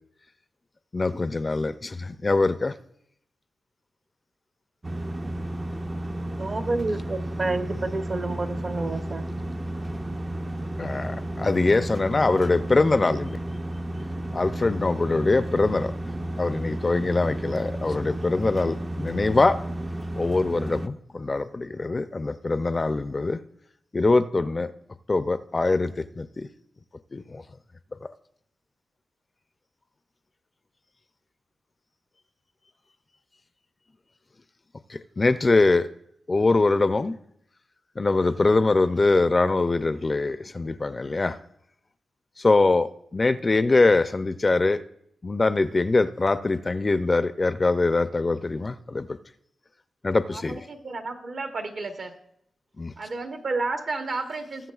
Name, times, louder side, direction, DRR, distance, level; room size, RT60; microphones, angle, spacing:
voice 1, 0.9-2.8 10.8-13.4 14.3-15.9 16.4-19.6 20.2-23.4 23.9-24.7 25.1-26.5 27.1-27.4 34.9-35.9 36.3-37.2 38.0-41.4 42.4-44.8 45.2-49.1 50.0-50.6 52.8-52.9, left 3 dB, 35° left, 12 dB, 0.4 m, -23 dB
sound 1, 4.8-20.9, right 1 dB, 25° right, 0.5 m, -32 dB
voice 2, 6.4-9.3, right 2 dB, 45° right, 8 dB, 0.9 m, -29 dB
voice 3, 50.3-52.1 53.0-54.7, right 3 dB, 65° right, 5 dB, 1.2 m, -32 dB
20.0 x 7.4 x 2.4 m, 0.72 s
cardioid pair, 65°, 0 cm